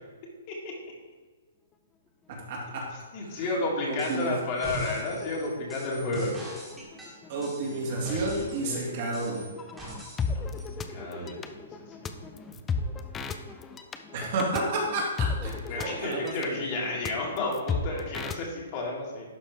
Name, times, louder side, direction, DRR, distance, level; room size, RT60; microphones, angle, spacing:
voice 1, 2.3-2.9 3.3-3.4 3.9-4.3 7.3-9.4 14.1-16.9, right 2 dB, 50° right, -3 dB, 2.4 m, -31 dB
sound 1, 3.0-3.1 3.3-3.7 4.1-18.4, left 4 dB, 15° left, 0.4 m, -36 dB
voice 2, 3.1-6.5 7.6-8.9 10.3-10.4 10.9-11.8 15.4-19.3, left 2 dB, 40° left, -3 dB, 2.1 m, -32 dB
sound 2, 4.0-4.3 4.6-8.7 9.1-10.3 10.6-10.7, right 1 dB, 10° right, 1.9 m, -40 dB
11.5 x 4.3 x 3.7 m, 1.4 s
hypercardioid pair, 145°, 0 cm